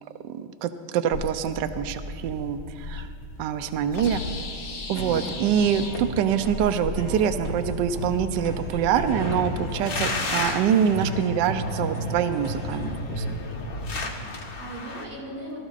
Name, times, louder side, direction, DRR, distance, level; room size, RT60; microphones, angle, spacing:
voice 1, 0.0-3.1 3.4-4.2 4.9-13.4, right 8 dB, 80° right, 9 dB, 1.0 m, -25 dB
sound 1, 1.1-15.0, left 2 dB, 45° left, 1.7 m, -33 dB
sound 2, 4.9-12.9, equal, 35° right, 2.9 m, -38 dB
voice 2, 4.9-5.5 14.2-15.6, right 1 dB, 60° right, -5 dB, 4.5 m, -39 dB
22.0 x 13.5 x 2.5 m, 2.3 s
omnidirectional pair, 2.4 m